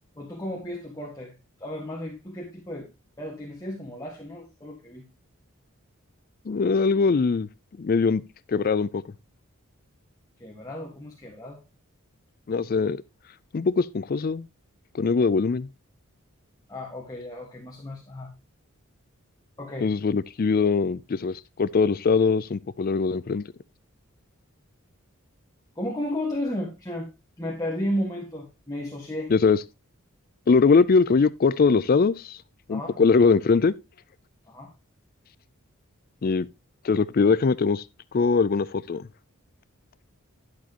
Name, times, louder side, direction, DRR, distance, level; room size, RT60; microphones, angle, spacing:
voice 1, 0.2-1.3 1.6-2.9 3.2-5.0 10.4-11.6 16.7-18.3 19.6-19.9 25.7-27.1 27.4-29.3 32.7-33.0 34.5-34.7, left 1 dB, 15° left, 1.6 m, -33 dB
voice 2, 6.5-7.5 7.8-8.2 8.5-9.0 12.5-13.0 13.5-14.5 14.9-15.7 19.8-23.4 29.3-29.6 30.5-32.4 32.7-33.7 36.2-36.5 36.8-37.8 38.1-39.1, left 4 dB, 40° left, 0.4 m, -21 dB
11.5 x 7.5 x 2.9 m
head